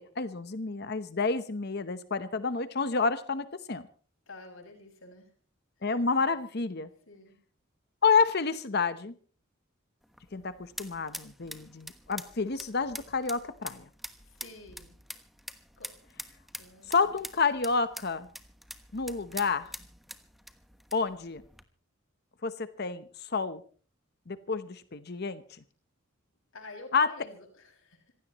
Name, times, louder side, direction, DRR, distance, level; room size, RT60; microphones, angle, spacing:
voice 1, 0.0-3.8 5.8-6.9 8.0-9.1 10.3-13.8 16.9-18.3 18.9-19.7 20.9-21.4 22.4-23.6 24.3-25.4 26.9-27.1, left 4 dB, 50° left, 12 dB, 0.9 m, -29 dB
voice 2, 4.3-5.3 5.9-6.4 7.1-7.4 14.2-15.0 15.8-15.9 16.6-17.1 26.5-28.1, left 2 dB, 85° left, 2 dB, 6.1 m, -49 dB
sound 1, 10.0-21.6, equal, ahead, 1.1 m, -46 dB
26.5 x 16.0 x 3.1 m, 0.40 s
head